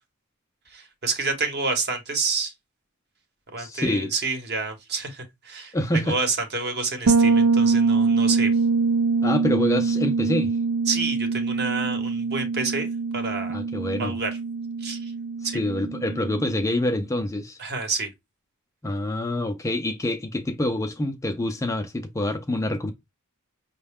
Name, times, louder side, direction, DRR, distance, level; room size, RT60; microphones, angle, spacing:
voice 1, 0.7-2.5 3.5-8.6 10.9-13.6 14.0-14.4 14.8-15.1 15.4-15.6 17.6-18.1, right 4 dB, 50° right, 1.0 m, -29 dB
voice 2, 3.6-4.1 5.7-6.2 9.2-10.6 13.5-14.1 15.4-17.6 18.8-22.9, left 1 dB, 15° left, 0.4 m, -26 dB
Bass guitar, 7.1-16.7, right 4 dB, 75° right, 0.5 m, -24 dB
5.4 x 2.1 x 3.5 m
head